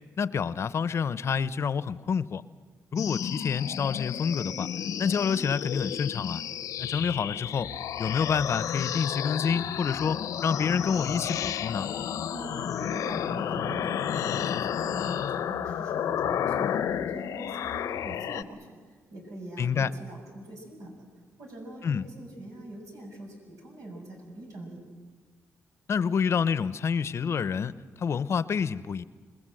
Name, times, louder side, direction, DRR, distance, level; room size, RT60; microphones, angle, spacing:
voice 1, 0.2-2.4 2.9-4.7 5.0-6.4 6.8-7.7 8.0-11.9 19.6-19.9 21.8-22.1 25.9-29.0, left 6 dB, 55° left, 16 dB, 0.7 m, -28 dB
sound 1, 3.0-18.4, left 9 dB, 90° left, 0.9 m, -31 dB
voice 2, 12.3-20.9 21.4-24.8, right 1 dB, 80° right, 1 dB, 7.4 m, -43 dB
27.0 x 20.5 x 7.7 m, 1.4 s
cardioid pair, 95°, 6 cm